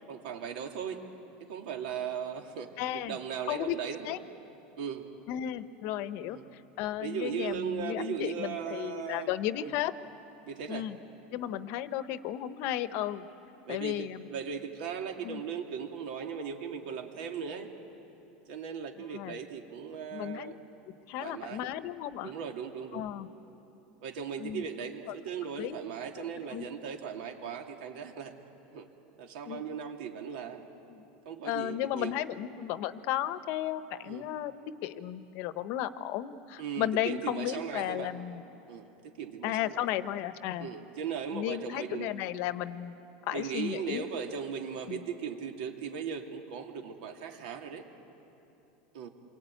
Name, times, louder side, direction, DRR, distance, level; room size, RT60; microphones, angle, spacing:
voice 1, 0.1-1.0 1.4-4.1 4.7-5.1 6.3-6.4 7.0-9.3 9.6-9.7 10.4-10.9 13.7-17.7 18.5-20.6 21.2-21.7 22.2-23.0 24.0-28.3 28.7-28.9 29.2-30.6 31.2-32.1 34.0-34.3 36.6-38.1 38.7-40.0 40.6-42.1 43.3-47.8 48.9-49.1, right 7 dB, 75° right, 3 dB, 2.9 m, -38 dB
voice 2, 2.8-3.2 3.5-3.8 4.0-4.2 5.3-9.9 10.7-11.0 11.3-13.3 13.7-14.3 15.2-15.4 19.1-19.4 20.1-20.5 21.1-22.3 22.9-23.3 24.4-24.6 25.6-25.8 26.5-26.7 29.5-29.6 30.9-31.0 31.4-34.5 34.8-38.4 39.4-40.7 41.3-42.9 43.2-44.1 44.9-45.0, left 12 dB, 50° left, 13 dB, 0.9 m, -34 dB
28.0 x 23.0 x 9.2 m, 2.9 s
supercardioid pair, 155°, 5 cm